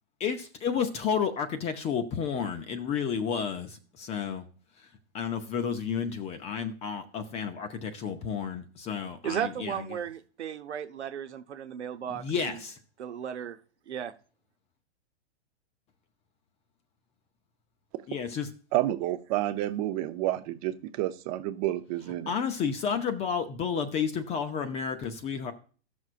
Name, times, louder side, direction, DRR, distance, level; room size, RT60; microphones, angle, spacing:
voice 1, 0.2-4.5 4.8-4.9 5.1-10.0 12.1-12.7 18.1-18.5 22.3-25.5, left 6 dB, 20° left, 0.6 m, -31 dB
voice 2, 9.2-12.6 13.0-13.6 13.9-14.1, right 9 dB, 85° right, 0.9 m, -35 dB
voice 3, 18.7-22.3, right 14 dB, 35° right, 0.7 m, -29 dB
15.0 x 6.2 x 2.5 m
hypercardioid pair, 135°, 33 cm